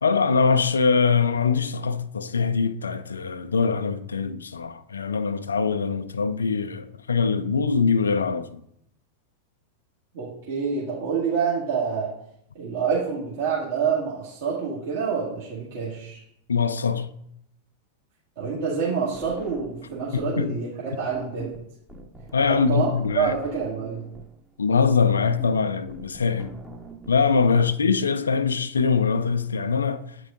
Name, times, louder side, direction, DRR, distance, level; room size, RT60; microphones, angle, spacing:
voice 1, 0.0-8.6 16.5-17.1 20.1-20.5 22.3-23.3 24.6-26.5 27.1-30.1, left 5 dB, 70° left, 0.4 m, -23 dB
voice 2, 10.1-12.1 12.5-16.2 18.4-21.5 22.5-24.1 27.5-27.6, right 6 dB, 55° right, 1.9 m, -27 dB
sound 1, 19.1-20.4 20.7-27.1, right 2 dB, 5° right, 0.8 m, -43 dB
8.9 x 4.5 x 3.7 m
figure-of-eight pair, 90°, 0 cm